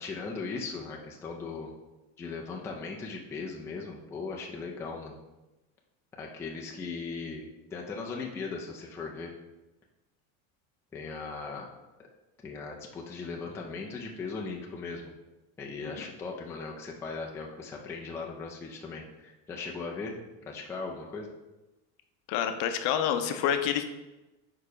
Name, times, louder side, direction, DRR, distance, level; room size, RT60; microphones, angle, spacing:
voice 1, 0.0-1.7 2.2-5.2 6.2-7.4 7.7-9.3 10.9-11.7 12.4-15.1 15.6-20.2 20.5-21.3, left 4 dB, 5° left, -1 dB, 0.4 m, -38 dB
voice 2, 22.3-23.8, left 9 dB, 60° left, 8 dB, 0.7 m, -27 dB
4.7 x 4.7 x 4.9 m, 1.0 s
cardioid pair, 165°, 38 cm